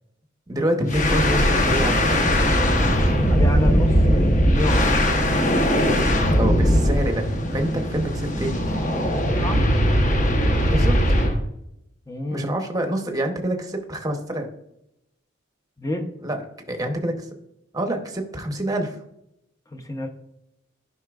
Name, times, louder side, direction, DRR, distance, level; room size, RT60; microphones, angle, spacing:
voice 1, 0.5-2.3 6.4-7.3 7.5-8.6 10.7-11.2 12.3-14.5 16.2-16.4 16.7-17.3 17.7-19.0, right 1 dB, 15° right, 4 dB, 0.9 m, -26 dB
sound 1, 0.9-11.4, equal, 35° left, 1.0 m, -19 dB
voice 2, 3.3-5.0 9.1-9.7 12.1-12.5 15.8-16.1 19.7-20.1, left 1 dB, 15° left, 5 dB, 0.7 m, -28 dB
11.0 x 5.6 x 2.4 m, 0.80 s
head